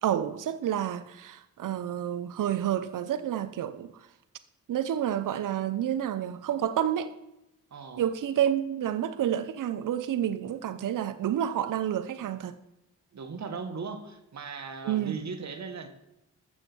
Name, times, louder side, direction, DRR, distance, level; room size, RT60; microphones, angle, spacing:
voice 1, 0.0-3.9 4.7-7.1 8.0-12.5 14.8-15.2, right 10 dB, 75° right, 0.7 m, -29 dB
voice 2, 7.7-8.1 13.1-15.9, right 4 dB, 60° right, 1.7 m, -38 dB
14.5 x 6.5 x 6.2 m
cardioid pair, 65°, 32 cm